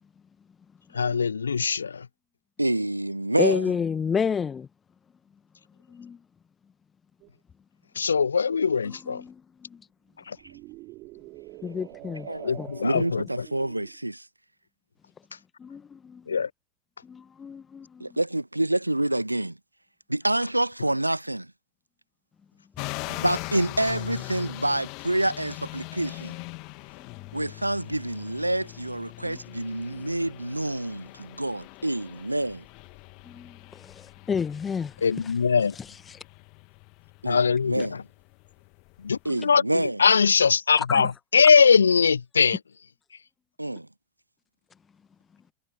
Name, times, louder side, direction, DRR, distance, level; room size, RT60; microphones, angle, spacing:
voice 1, 0.9-2.1 7.9-9.2 10.3-10.4 12.4-13.5 16.3-16.5 35.0-35.7 37.2-38.0 39.0-42.6, left 6 dB, 75° left, 0.9 m, -21 dB
voice 2, 2.6-3.6 12.3-12.5 12.8-14.2 18.0-19.6 20.1-21.5 23.1-26.4 27.3-32.6 37.2-38.0 39.2-40.0 43.6-43.9, right 1 dB, 85° right, 1.4 m, -27 dB
voice 3, 3.4-4.7 5.9-6.2 8.8-9.8 11.6-12.3 12.6-12.7 15.6-16.4 17.0-18.2 27.0-27.3 29.3-29.4 29.9-30.1 33.2-35.0 35.8-36.2 39.3-39.5 40.8-41.0, left 6 dB, 20° left, 1.8 m, -31 dB
sound 1, 7.2-7.3 10.2-14.0, right 21 dB, 40° right, 3.7 m, -45 dB
sound 2, 22.8-39.3, left 30 dB, 45° left, 2.1 m, -41 dB
figure-of-eight pair, 90°, 0 cm